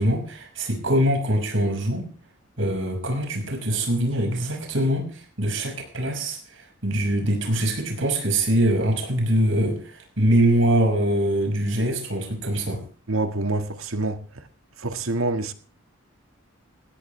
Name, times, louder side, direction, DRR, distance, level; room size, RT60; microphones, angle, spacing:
voice 1, 0.0-2.1 2.6-12.8, right 1 dB, 70° right, 5.8 m, -23 dB
voice 2, 13.1-14.4 14.8-15.5, right 2 dB, 85° right, 1.9 m, -26 dB
19.0 x 16.5 x 3.3 m
head